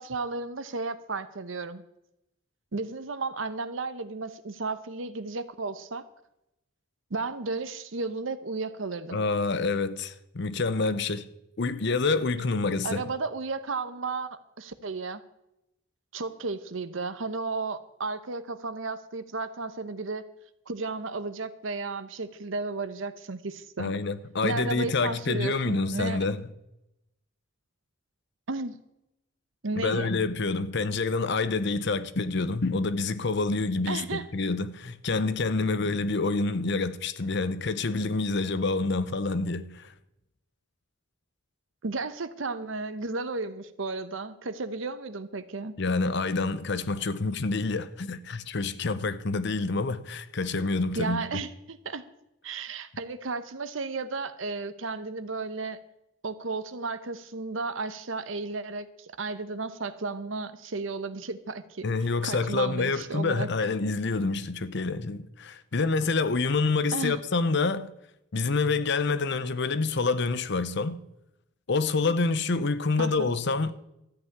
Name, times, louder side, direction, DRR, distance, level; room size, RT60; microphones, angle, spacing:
voice 1, 0.0-1.8 2.7-6.0 7.1-9.2 12.8-15.2 16.1-20.3 20.7-23.9 24.4-26.3 28.5-28.8 29.6-30.1 33.9-34.3 41.8-45.7 50.9-52.0 52.4-55.8 56.2-61.9 62.2-63.5 66.9-67.2 73.0-73.3, right 3 dB, 75° right, 0.9 m, -33 dB
voice 2, 9.1-11.3 11.6-13.0 23.8-26.4 29.8-39.9 45.8-51.2 61.8-67.9 68.3-71.0 71.7-73.7, left 3 dB, 60° left, 0.8 m, -27 dB
13.5 x 5.8 x 9.5 m
head